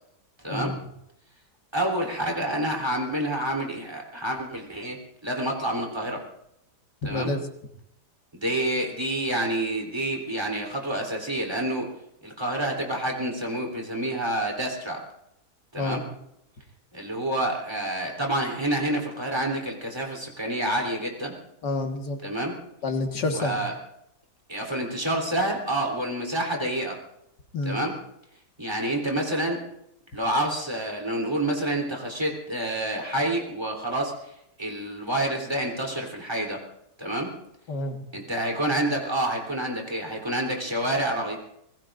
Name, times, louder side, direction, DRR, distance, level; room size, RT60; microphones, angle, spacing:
voice 1, 1.7-5.0 5.2-6.2 7.0-7.3 8.3-11.9 12.2-15.0 15.7-16.0 16.9-21.3 22.2-22.5 23.3-23.7 24.5-27.0 27.6-27.9 28.6-29.6 30.1-34.1 34.6-36.6 37.0-37.3 38.1-41.4, right 1 dB, 15° right, 0 dB, 3.6 m, -28 dB
voice 2, 7.1-7.4 15.8-16.0 21.6-22.2 22.8-23.6 27.5-27.8 37.7-38.0, left 2 dB, 80° left, 4 dB, 2.3 m, -28 dB
26.5 x 20.5 x 2.6 m, 0.77 s
omnidirectional pair, 1.8 m